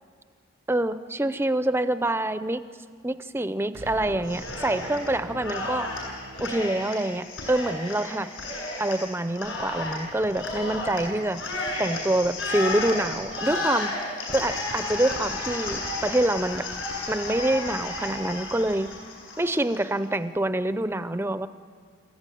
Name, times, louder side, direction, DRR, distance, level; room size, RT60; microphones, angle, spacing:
voice 1, 0.7-2.6 3.0-5.9 6.4-8.3 8.8-11.4 11.8-13.9 14.3-16.7 17.1-18.9 19.4-21.5, right 1 dB, 10° right, 11 dB, 0.5 m, -26 dB
sound 1, 3.7-7.2, right 2 dB, 90° right, 1.3 m, -42 dB
Cheering, 4.3-5.1 5.4-19.8, left 2 dB, 70° left, 7.9 m, -33 dB
29.5 x 15.0 x 9.2 m, 2.1 s
head